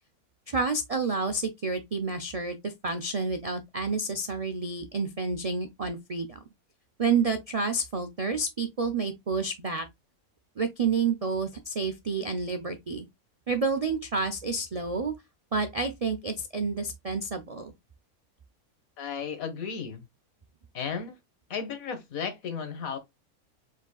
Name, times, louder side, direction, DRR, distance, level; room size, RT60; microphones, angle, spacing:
voice 1, 0.5-6.4 7.0-9.9 10.6-13.1 13.5-15.1 15.5-17.7, right 4 dB, 60° right, 0.3 m, -29 dB
voice 2, 19.0-20.1 20.7-21.2 21.5-23.0, left 6 dB, 70° left, 1.6 m, -34 dB
4.9 x 3.8 x 2.3 m
omnidirectional pair, 1.5 m